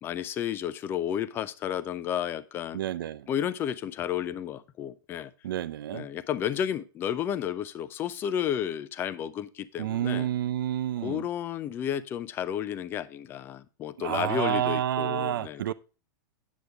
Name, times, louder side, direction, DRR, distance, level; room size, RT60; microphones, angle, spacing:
voice 1, 0.0-2.8 3.3-5.3 5.9-10.3 11.0-15.7, left 9 dB, 20° left, 0.4 m, -32 dB
voice 2, 2.7-3.3 5.4-6.1 9.8-11.2 14.0-15.7, right 11 dB, 90° right, 0.6 m, -29 dB
8.3 x 8.0 x 3.4 m
supercardioid pair, 160°, 11 cm